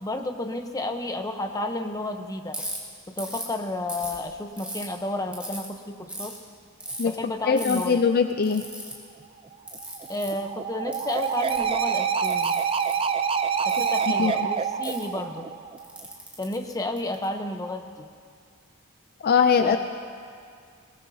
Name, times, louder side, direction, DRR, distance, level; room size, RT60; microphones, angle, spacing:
voice 1, 0.0-2.6 3.2-6.4 7.0-8.0 10.1-12.6 13.6-15.5 16.4-18.1 19.6-19.8, left 2 dB, 15° left, 5 dB, 0.8 m, -31 dB
Ratchet pawl, 2.5-2.8 3.2-3.5 3.9-4.8 5.3-5.7 6.1-6.4 6.8-7.1 7.6-7.8 8.4-8.9 9.7-10.3 10.9-11.7 12.2-12.9 13.7-14.0 14.8-15.0 15.8-17.2, right 1 dB, 5° right, 2.2 m, -37 dB
voice 2, 7.4-8.7 14.2-14.5 19.2-19.8, left 6 dB, 45° left, 8 dB, 0.4 m, -21 dB
sound 1, 9.7-16.1, right 6 dB, 25° right, 0.5 m, -27 dB
22.0 x 18.5 x 2.8 m, 2.2 s
head